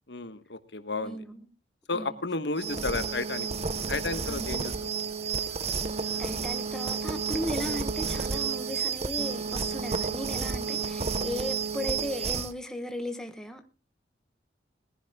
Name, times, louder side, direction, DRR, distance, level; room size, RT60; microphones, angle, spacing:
voice 1, 0.1-1.2 1.9-4.9, left 3 dB, 70° left, 1.3 m, -33 dB
voice 2, 1.0-1.5 1.9-2.2 4.2-4.6 6.2-13.7, equal, 5° left, 1.3 m, -36 dB
sound 1, 2.6-12.5, right 5 dB, 35° right, 0.8 m, -31 dB
sound 2, 3.1-10.7, right 2 dB, 80° right, 3.7 m, -55 dB
21.5 x 15.5 x 2.3 m
head